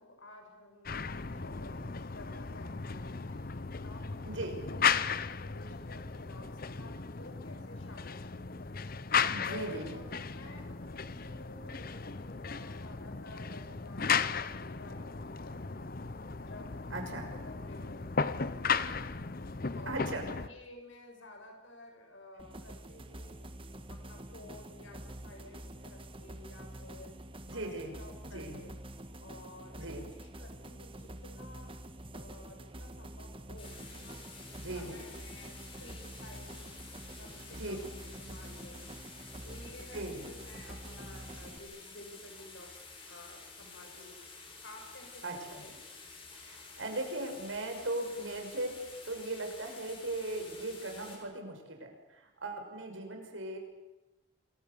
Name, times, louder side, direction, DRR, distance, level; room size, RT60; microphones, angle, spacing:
voice 1, 0.0-1.8 2.1-5.1 5.5-8.8 9.5-16.0 16.4-19.0 19.7-23.5 23.9-27.1 27.5-28.8 29.2-31.7 32.1-34.3 34.7-36.7 37.2-37.9 38.2-39.0 39.4-44.2 44.6-45.8, left 1 dB, 75° left, 4 dB, 7.1 m, -53 dB
sound 1, 0.9-20.5, left 6 dB, 50° left, 0.9 m, -35 dB
voice 2, 4.3-4.6 9.2-10.0 16.9-17.3 19.9-20.3 27.5-27.9 28.2-28.6 29.8-30.0 34.6-35.0 37.5-37.8 39.9-40.3 45.2-45.6 46.3-48.7 49.0-53.6, right 2 dB, 80° right, 3 dB, 6.2 m, -38 dB
sound 2, 22.4-41.6, right 1 dB, 25° right, 1.6 m, -47 dB
sound 3, 33.6-51.2, left 4 dB, 25° left, 6.5 m, -51 dB
28.0 x 23.0 x 7.0 m, 1.0 s
head